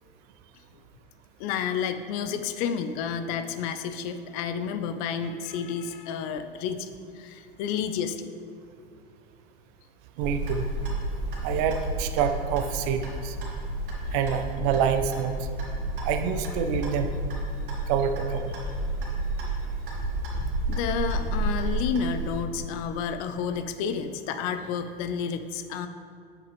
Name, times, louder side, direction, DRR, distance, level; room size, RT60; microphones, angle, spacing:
voice 1, 1.4-6.9 7.1-8.3 20.7-25.9, left 7 dB, 40° left, 9 dB, 0.5 m, -30 dB
voice 2, 10.2-10.7 11.4-13.4 14.1-15.3 16.0-17.1 17.9-18.6, right 8 dB, 40° right, 8 dB, 0.6 m, -27 dB
Clock, 10.2-22.3, right 1 dB, 60° right, 2.1 m, -31 dB
8.3 x 7.8 x 3.4 m, 2.2 s
figure-of-eight pair, 85°, 30 cm